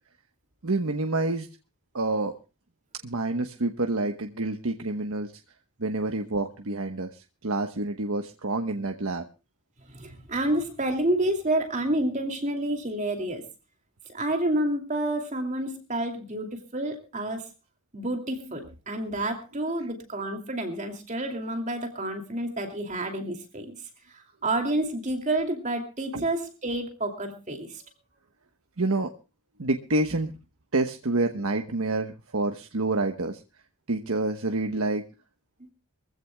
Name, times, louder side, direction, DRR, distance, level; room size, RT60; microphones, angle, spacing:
voice 1, 0.6-1.5 1.9-2.3 3.0-5.3 5.8-9.2 26.1-26.2 28.8-29.1 29.6-30.3 30.7-33.4 33.9-35.0, right 2 dB, 70° right, 6 dB, 1.1 m, -28 dB
voice 2, 9.9-13.5 14.1-17.5 17.9-23.8 24.1-27.8 35.6-35.7, right 1 dB, 35° right, 4 dB, 2.6 m, -29 dB
24.0 x 15.5 x 2.3 m, 0.30 s
head